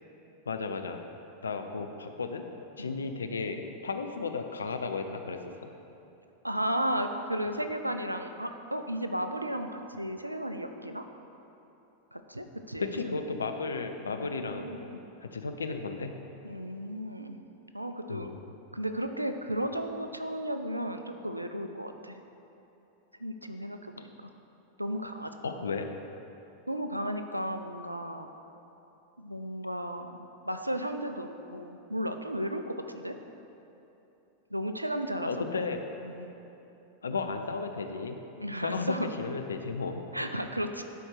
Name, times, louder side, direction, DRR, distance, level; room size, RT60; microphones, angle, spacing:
voice 1, 0.5-1.0 1.4-2.4 2.8-5.7 12.8-14.7 15.2-16.2 18.1-18.4 25.4-25.9 35.2-35.8 37.0-38.2 38.6-40.0, left 4 dB, 75° left, 6 dB, 0.5 m, -34 dB
voice 2, 6.4-11.0 12.1-13.4 14.1-15.0 16.4-17.4 17.7-18.3 18.7-22.2 23.2-24.1 24.8-25.5 26.7-28.3 29.2-33.2 34.5-35.3 36.0-36.3 38.4-39.1 40.1-40.8, equal, 85° right, 7 dB, 0.4 m, -34 dB
11.5 x 4.4 x 4.9 m, 3.0 s
figure-of-eight pair, 90°, 0 cm